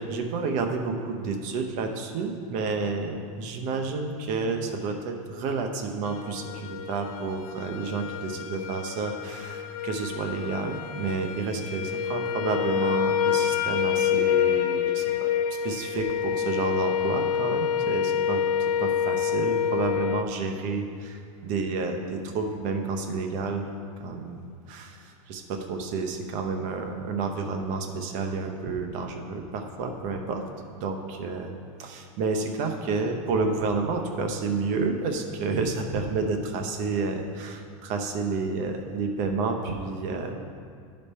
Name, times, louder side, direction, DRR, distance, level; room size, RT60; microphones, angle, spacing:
voice 1, 0.0-15.3 15.6-18.4 18.8-23.6 24.0-24.4 24.7-30.4 30.8-31.5 31.8-40.4, right 4 dB, 45° right, 4 dB, 0.9 m, -30 dB
sound 1, 6.0-20.2, left 9 dB, 85° left, 0.5 m, -27 dB
10.5 x 5.3 x 4.3 m, 2.3 s
supercardioid pair, 140°, 18 cm